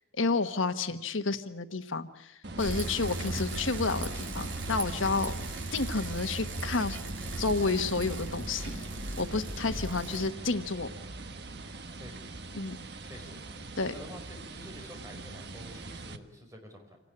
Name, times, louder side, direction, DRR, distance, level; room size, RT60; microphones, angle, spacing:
voice 1, 0.2-5.4 5.7-7.0 7.4-8.8 9.2-10.9 12.5-12.8 13.8-13.9, left 3 dB, 85° left, 9 dB, 1.4 m, -30 dB
sound 1, 2.4-16.2, right 2 dB, 55° right, 1.4 m, -43 dB
Bicycle, 2.6-10.3, right 2 dB, 80° right, 3.1 m, -37 dB
voice 2, 13.0-13.4 13.8-17.0, equal, 15° right, 2 dB, 5.4 m, -48 dB
26.5 x 19.0 x 8.6 m, 0.81 s
head